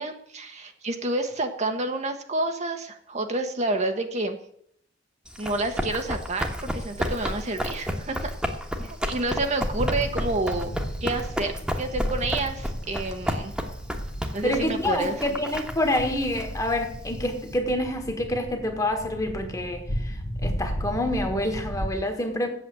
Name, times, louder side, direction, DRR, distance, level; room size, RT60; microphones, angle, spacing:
voice 1, 0.0-4.4 5.4-8.3 8.8-10.7 11.0-13.5 14.3-15.1, right 2 dB, 40° right, 1.1 m, -29 dB
Run, 5.3-17.5, equal, 5° right, 1.3 m, -32 dB
sound 1, 9.7-21.9, equal, 65° left, 1.4 m, -35 dB
voice 2, 14.4-22.5, left 1 dB, 20° left, 1.5 m, -27 dB
8.2 x 7.6 x 8.8 m
head